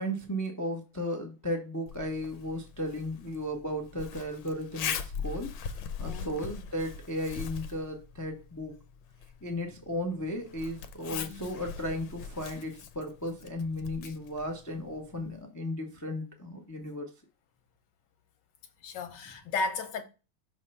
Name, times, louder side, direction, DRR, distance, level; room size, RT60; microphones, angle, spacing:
voice 1, 0.0-8.7 9.4-17.1, equal, 20° left, 0.4 m, -35 dB
Zipper (clothing), 1.9-15.4, left 7 dB, 80° left, 1.5 m, -41 dB
voice 2, 6.0-6.5 11.1-11.5 18.8-20.0, left 3 dB, 65° left, 1.6 m, -35 dB
6.4 x 3.2 x 5.5 m
omnidirectional pair, 2.2 m